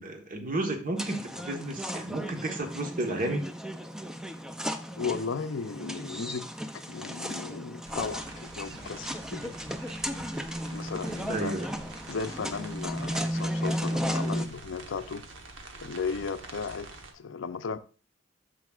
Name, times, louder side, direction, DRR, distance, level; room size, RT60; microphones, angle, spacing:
voice 1, 0.0-3.4 11.3-11.7, right 2 dB, 45° right, 1.2 m, -32 dB
sound 1, 1.0-14.5, equal, 5° right, 0.5 m, -35 dB
voice 2, 5.0-6.5 6.7-9.6 10.7-11.6 12.1-15.2 15.8-16.9 17.1-17.8, left 5 dB, 80° left, 0.5 m, -35 dB
sound 2, 7.8-17.1, right 2 dB, 75° right, 1.1 m, -46 dB
9.2 x 7.3 x 2.4 m
head